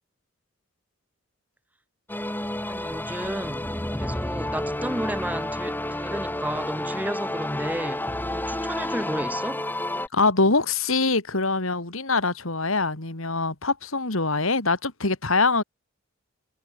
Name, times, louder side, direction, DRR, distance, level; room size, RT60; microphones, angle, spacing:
sound 1, 2.1-10.1, left 1 dB, 10° left, 2.2 m, -30 dB
voice 1, 2.7-9.6, right 1 dB, 10° right, 2.7 m, -33 dB
voice 2, 10.1-15.6, left 3 dB, 75° left, 3.0 m, -23 dB
head